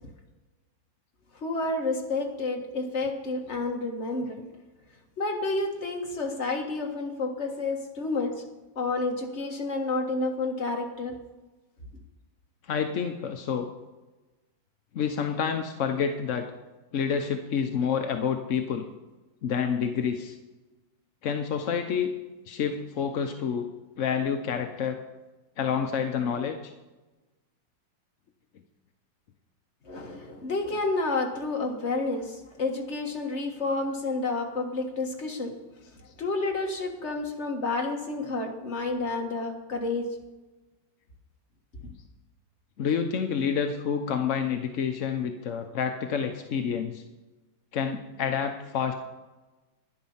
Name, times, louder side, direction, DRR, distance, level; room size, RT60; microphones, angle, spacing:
voice 1, 1.4-4.4 5.2-8.4 8.7-11.2 29.8-35.5 36.2-40.1, left 3 dB, 35° left, 2 dB, 1.7 m, -30 dB
voice 2, 12.6-13.7 14.9-16.4 16.9-18.8 19.4-20.4 21.2-22.1 22.5-23.7 24.0-25.0 25.6-26.7 42.8-47.0 47.7-48.9, left 7 dB, 60° left, 6 dB, 0.8 m, -28 dB
11.5 x 10.5 x 5.6 m, 1.1 s
omnidirectional pair, 2.1 m